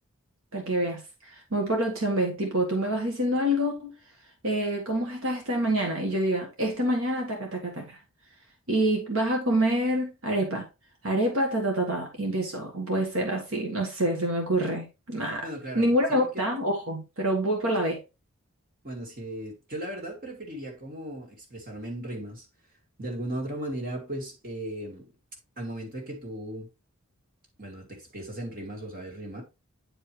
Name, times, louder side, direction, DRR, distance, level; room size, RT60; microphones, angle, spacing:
voice 1, 0.5-3.9 4.4-8.0 8.7-10.7 11.0-15.5 15.7-18.0, right 1 dB, 70° right, 1.6 m, -27 dB
voice 2, 15.4-16.5 18.8-22.5 23.0-25.1 25.6-26.7 27.6-29.4, right 1 dB, 40° right, 2.6 m, -37 dB
9.7 x 4.9 x 3.2 m
head